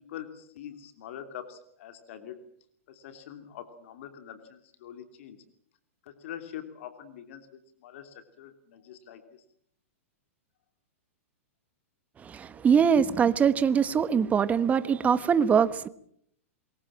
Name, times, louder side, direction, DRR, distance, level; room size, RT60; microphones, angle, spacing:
voice 1, 0.0-2.4 2.9-5.4 6.0-9.4, left 10 dB, 60° left, 2.9 m, -44 dB
voice 2, 12.2-15.9, right 7 dB, 20° right, 1.3 m, -23 dB
26.5 x 22.5 x 7.5 m
hypercardioid pair, 125°, 8 cm